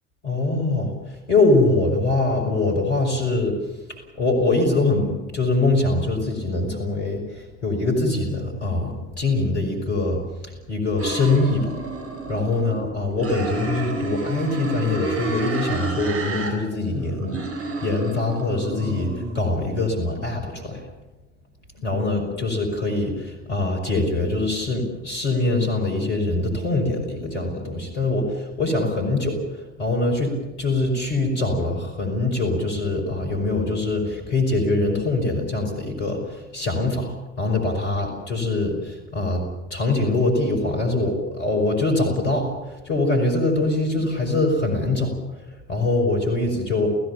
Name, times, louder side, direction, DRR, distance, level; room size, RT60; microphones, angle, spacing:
voice 1, 0.2-0.9 1.3-3.6 4.2-10.2 10.7-11.7 12.3-17.4 17.8-20.8 21.8-29.4 29.8-37.1 37.4-39.4 39.7-42.5 42.9-45.1 45.7-46.9, left 2 dB, 85° left, 2 dB, 5.4 m, -23 dB
sound 1, 11.0-12.8 13.2-16.5 16.8-19.4, right 3 dB, 40° right, 7.7 m, -30 dB
29.0 x 17.0 x 7.2 m, 1.1 s
figure-of-eight pair, 55°, 34 cm